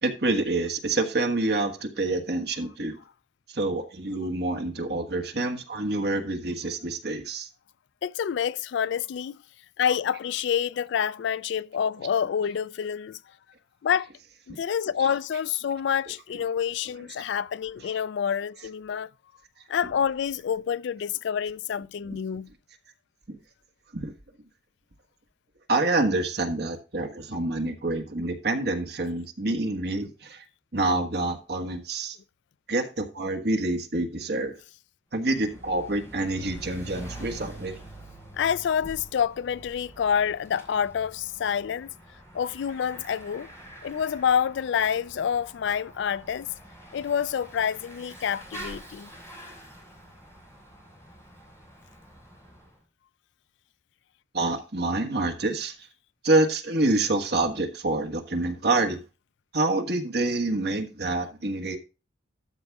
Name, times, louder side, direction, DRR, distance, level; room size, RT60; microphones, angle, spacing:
voice 1, 0.0-3.0 3.5-7.5 14.5-14.6 23.3-23.4 23.9-24.1 25.7-30.4 30.7-32.2 32.7-34.6 35.1-37.8 54.3-55.7 56.2-59.0 59.5-61.8, right 2 dB, 55° right, 1.4 m, -27 dB
voice 2, 8.0-9.4 9.8-13.2 13.8-14.1 14.5-19.1 19.7-22.5 38.4-41.9 42.3-43.5 43.8-46.5 46.9-49.1, left 8 dB, 70° left, 0.3 m, -27 dB
Bicycle / Mechanisms, 35.2-52.8, right 1 dB, 15° left, 3.3 m, -46 dB
13.0 x 5.2 x 3.5 m
head